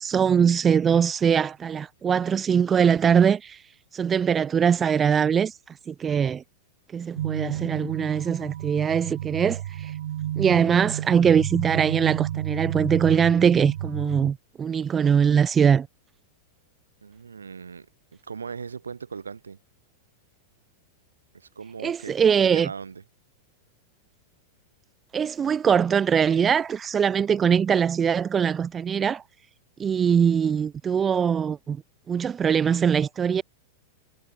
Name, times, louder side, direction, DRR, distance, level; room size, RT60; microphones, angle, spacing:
voice 1, 0.0-3.6 3.9-5.5 5.9-6.4 6.9-9.9 10.4-15.9 21.8-22.7 25.1-29.2 29.8-31.8 32.1-33.4, right 7 dB, 25° right, 0.5 m, -22 dB
sound 1, 7.2-14.3, right 12 dB, 70° right, 0.7 m, -31 dB
voice 2, 17.0-17.9 18.2-19.6 21.3-23.0, right 5 dB, 90° right, 5.0 m, -38 dB
hypercardioid pair, 100°, 0 cm